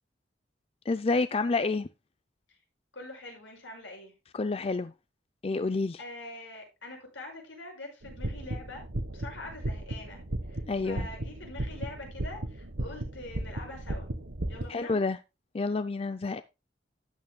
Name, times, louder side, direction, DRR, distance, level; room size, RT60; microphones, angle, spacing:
voice 1, 0.9-1.9 4.3-4.9 5.4-6.0 10.7-11.1 14.7-15.2 15.5-16.4, left 3 dB, 30° left, 0.4 m, -28 dB
voice 2, 2.9-4.1 6.0-8.8 9.1-10.2 10.5-14.1 14.5-14.9, left 2 dB, 90° left, 5.5 m, -44 dB
sound 1, 8.0-14.6, right 1 dB, 85° right, 1.2 m, -36 dB
12.5 x 9.0 x 2.2 m
head